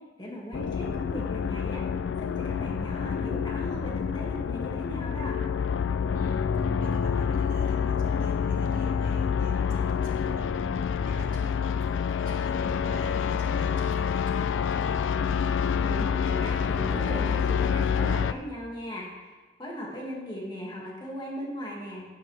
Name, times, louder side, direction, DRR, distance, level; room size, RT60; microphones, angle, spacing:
voice 1, 0.2-1.8 2.2-5.4 15.8-22.1, equal, 25° left, -3 dB, 2.0 m, -38 dB
sound 1, 0.5-18.3, left 6 dB, 85° left, 0.4 m, -27 dB
voice 2, 6.1-15.0, right 1 dB, 50° right, -1 dB, 1.6 m, -49 dB
11.0 x 9.2 x 3.3 m, 1.2 s
head